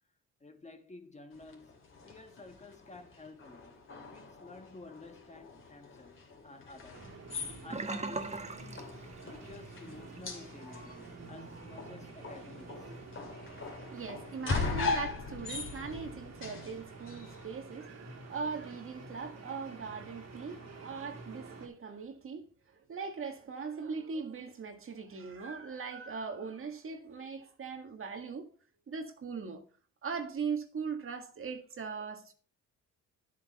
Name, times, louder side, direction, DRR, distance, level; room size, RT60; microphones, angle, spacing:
voice 1, 0.4-3.8 4.1-6.2 6.4-7.1 7.6-12.9, left 3 dB, 25° left, 1.5 m, -52 dB
sound 1, 1.3-17.5, left 4 dB, 40° left, 2.8 m, -41 dB
sound 2, 6.9-21.7, right 3 dB, 65° right, 2.8 m, -49 dB
Sink (filling or washing), 7.7-9.7 10.0-10.3 10.7-10.8, right 3 dB, 20° right, 1.2 m, -39 dB
voice 2, 13.9-22.5 22.7-28.5 28.9-29.6 30.0-32.3, right 5 dB, 45° right, 1.8 m, -40 dB
10.5 x 8.0 x 4.2 m
cardioid pair, 90°, 30 cm